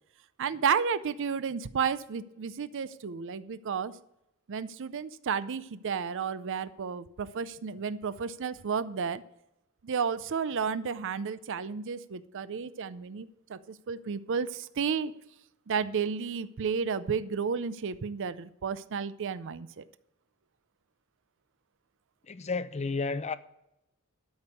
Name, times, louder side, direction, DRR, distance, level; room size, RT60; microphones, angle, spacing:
voice 1, 0.4-3.9 4.5-9.2 9.8-15.1 15.7-19.8, right 6 dB, 60° right, 0.5 m, -32 dB
voice 2, 22.2-23.4, left 4 dB, 30° left, 0.5 m, -32 dB
13.0 x 5.3 x 8.1 m
head